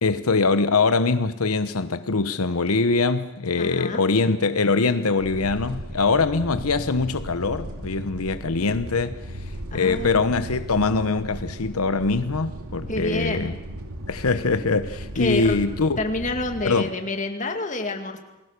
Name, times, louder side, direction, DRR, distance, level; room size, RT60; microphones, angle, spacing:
voice 1, 0.0-13.5 14.1-16.0 16.6-16.9, left 4 dB, 85° left, 1.0 m, -23 dB
voice 2, 3.6-4.0 9.7-10.2 12.9-13.6 15.2-15.6 16.0-18.2, left 2 dB, 35° left, 2.3 m, -28 dB
sound 1, 5.2-16.7, right 1 dB, 90° right, 2.8 m, -36 dB
28.5 x 20.5 x 6.7 m
head